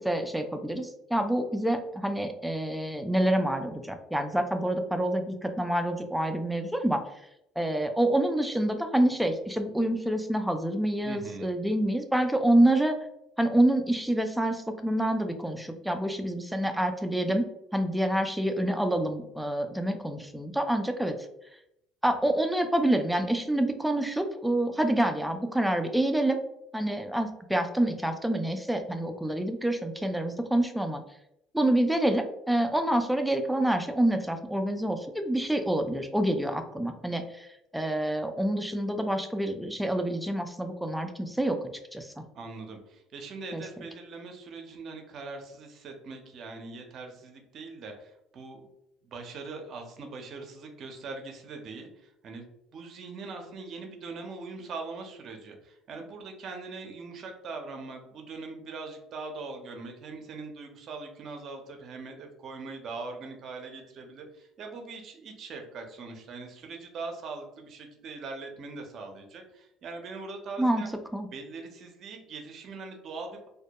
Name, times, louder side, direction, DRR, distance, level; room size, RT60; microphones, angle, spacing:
voice 1, 0.0-7.0 7.6-13.0 13.4-17.5 17.7-21.2 22.0-26.4 26.7-31.0 31.5-37.5 37.7-41.6 41.9-42.2 43.5-43.6 70.6-70.8 71.1-71.3, right 1 dB, 5° right, 6 dB, 0.3 m, -27 dB
voice 2, 11.0-11.5 42.3-48.7 49.0-52.5 52.7-70.9 71.3-73.5, right 3 dB, 55° right, 4 dB, 0.5 m, -41 dB
2.1 x 2.1 x 2.8 m, 0.80 s
supercardioid pair, 80°, 0 cm